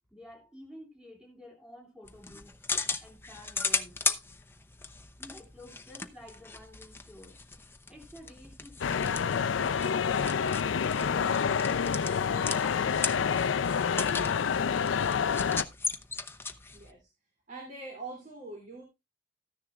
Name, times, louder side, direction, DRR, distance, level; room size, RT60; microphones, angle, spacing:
voice 1, 0.1-2.6 3.0-4.0 5.1-7.4 7.9-12.0, left 1 dB, 5° right, 3.0 m, -51 dB
sound 1, 2.0-16.9, left 4 dB, 15° left, 0.7 m, -37 dB
sound 2, 8.8-15.6, left 6 dB, 90° left, 0.5 m, -28 dB
voice 2, 16.7-17.1 17.5-18.8, right 3 dB, 45° right, 2.9 m, -43 dB
14.0 x 10.0 x 2.4 m
head